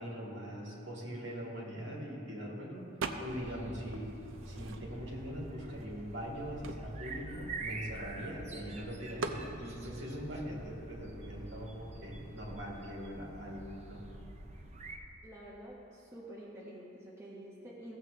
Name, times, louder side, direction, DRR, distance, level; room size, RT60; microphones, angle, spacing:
voice 1, 0.0-2.9 3.2-4.1 4.5-14.1, equal, 60° right, -2 dB, 1.8 m, -42 dB
sound 1, 3.0-3.6 3.9-5.2 5.8-5.9 6.1-8.4 9.2-9.5, right 3 dB, 80° right, 0.5 m, -41 dB
sound 2, 3.3-15.0, right 2 dB, 35° right, 0.6 m, -46 dB
voice 2, 15.2-18.0, right 1 dB, 15° right, -6 dB, 1.2 m, -48 dB
15.5 x 7.1 x 3.3 m, 2.7 s
head